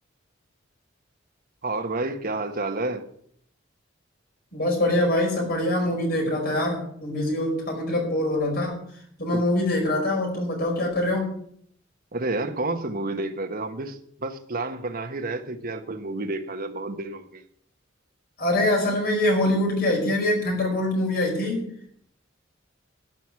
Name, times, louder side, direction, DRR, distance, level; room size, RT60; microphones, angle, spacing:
voice 1, 1.6-3.1 12.1-17.4, right 2 dB, 50° right, 1.3 m, -30 dB
voice 2, 4.5-8.8 9.2-11.4 18.4-21.7, left 1 dB, 55° left, 5.1 m, -24 dB
12.5 x 6.2 x 9.6 m
head